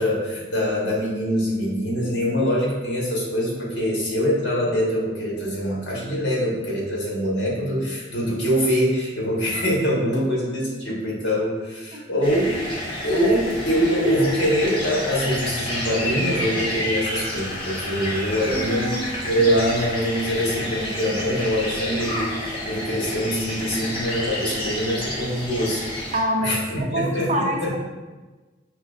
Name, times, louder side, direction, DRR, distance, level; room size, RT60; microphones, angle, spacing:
voice 1, 0.0-12.5 13.0-18.9 19.2-26.1 26.4-27.8, equal, 60° left, -5 dB, 1.5 m, -24 dB
sound 1, 12.2-26.2, left 1 dB, 30° left, 0.8 m, -30 dB
voice 2, 18.5-19.0 26.1-27.8, right 1 dB, 35° right, 2 dB, 0.4 m, -26 dB
5.3 x 3.1 x 2.5 m, 1.2 s
head